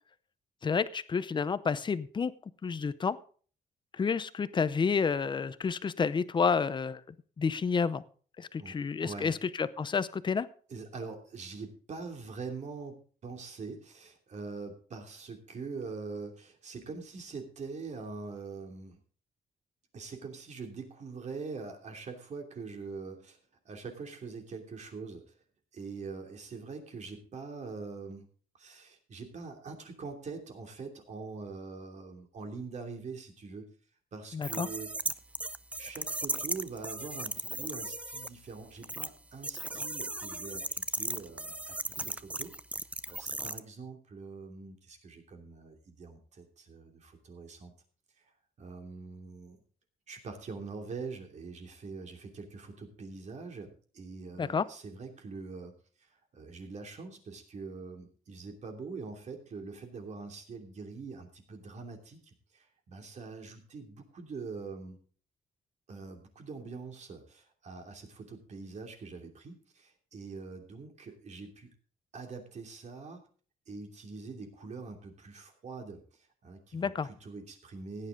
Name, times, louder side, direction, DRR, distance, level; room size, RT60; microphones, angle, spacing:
voice 1, 0.6-2.3 2.6-3.2 4.0-7.0 7.4-8.0 8.4-10.5 34.3-34.7 54.4-54.7 76.7-77.1, left 5 dB, 30° left, 16 dB, 0.7 m, -30 dB
voice 2, 9.0-9.3 10.7-19.0 19.9-23.4 23.6-25.2 25.7-28.3 28.6-33.7 34.1-34.9 35.8-42.5 43.1-47.7 48.6-49.6 50.1-55.7 56.3-65.0 65.9-71.7 72.1-73.2 73.7-76.0 76.4-78.1, right 4 dB, 50° right, 3 dB, 2.8 m, -43 dB
sound 1, 34.4-38.3 38.8-39.1 39.4-43.6, right 2 dB, 10° right, 0.5 m, -36 dB
16.0 x 9.9 x 3.8 m, 0.42 s
cardioid pair, 140°, 15 cm